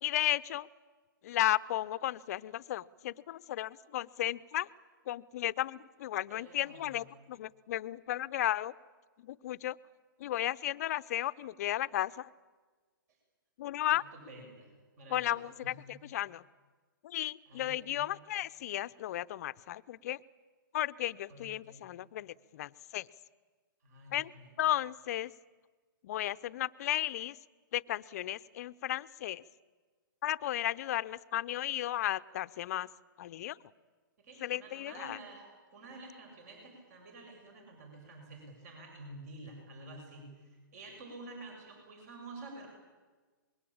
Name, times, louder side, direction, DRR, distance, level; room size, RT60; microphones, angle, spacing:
voice 1, 0.0-0.7 1.2-4.7 5.1-8.7 9.2-9.8 10.2-12.3 13.6-14.0 15.1-16.4 17.0-20.2 20.7-23.1 24.1-24.3 24.6-25.3 26.0-27.4 27.7-29.4 30.2-32.9 33.2-33.6 34.4-35.2, left 13 dB, 45° left, 15 dB, 0.7 m, -34 dB
voice 2, 6.3-7.0 13.9-15.3 15.6-15.9 17.5-18.1 21.3-21.9 23.8-24.5 34.2-42.7, right 2 dB, 50° right, 2 dB, 7.5 m, -50 dB
26.0 x 22.0 x 8.8 m, 1.3 s
hypercardioid pair, 145°, 12 cm